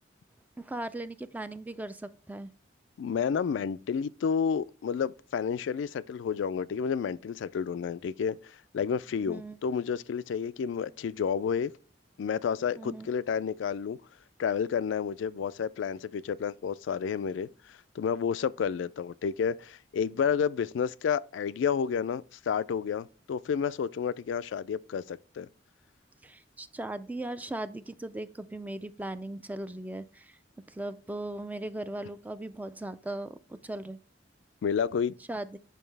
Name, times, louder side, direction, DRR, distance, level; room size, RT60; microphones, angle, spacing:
voice 1, 0.6-2.5 9.3-9.6 12.8-13.1 26.2-30.4 30.7-34.0 35.3-35.6, right 1 dB, 10° right, 0.3 m, -38 dB
voice 2, 3.0-11.7 12.2-14.0 14.4-17.5 18.0-25.5 34.6-35.1, left 7 dB, 75° left, 0.3 m, -30 dB
9.1 x 5.3 x 3.3 m
head